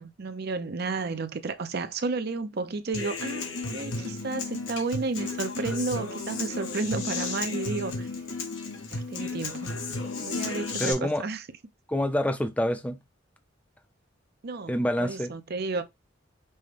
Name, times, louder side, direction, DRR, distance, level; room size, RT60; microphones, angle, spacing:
voice 1, 0.0-8.1 8.9-9.8 10.2-11.4 14.4-15.8, right 3 dB, 55° right, 0.6 m, -32 dB
Human voice / Acoustic guitar, 2.9-10.9, left 3 dB, 90° left, 1.2 m, -33 dB
voice 2, 10.8-11.2 11.9-13.0 14.7-15.3, equal, 10° left, 0.5 m, -27 dB
5.5 x 2.2 x 3.2 m
head